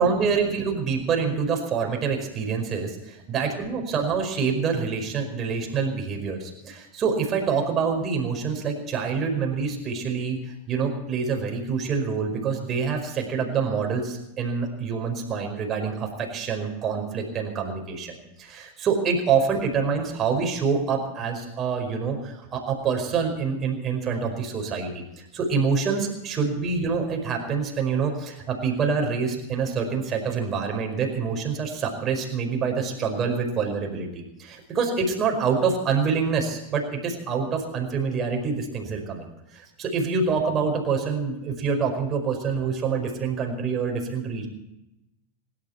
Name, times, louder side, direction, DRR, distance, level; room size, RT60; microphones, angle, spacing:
voice 1, 0.0-25.0 25.3-39.3 39.5-44.5, right 5 dB, 25° right, 2 dB, 5.0 m, -26 dB
26.0 x 12.0 x 4.6 m, 0.91 s
figure-of-eight pair, 90°, 0 cm